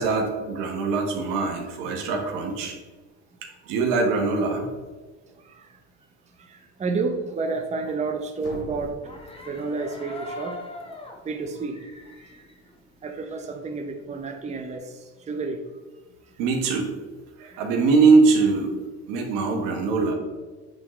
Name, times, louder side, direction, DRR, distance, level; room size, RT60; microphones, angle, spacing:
voice 1, 0.0-2.7 3.4-4.6 16.4-16.9 17.4-18.7 19.1-20.1, right 4 dB, 70° right, 3 dB, 1.3 m, -22 dB
voice 2, 6.5-8.9 9.5-10.6 11.2-11.8 12.3-12.4 13.0-15.6 17.4-17.6, right 4 dB, 20° right, 4 dB, 0.7 m, -30 dB
sound 1, 8.4-10.3, left 1 dB, 85° left, 1.6 m, -43 dB
sound 2, 9.0-13.6 14.0-15.0, left 2 dB, 15° left, 1.4 m, -42 dB
8.8 x 3.7 x 3.2 m, 1.3 s
supercardioid pair, 90°, 35 cm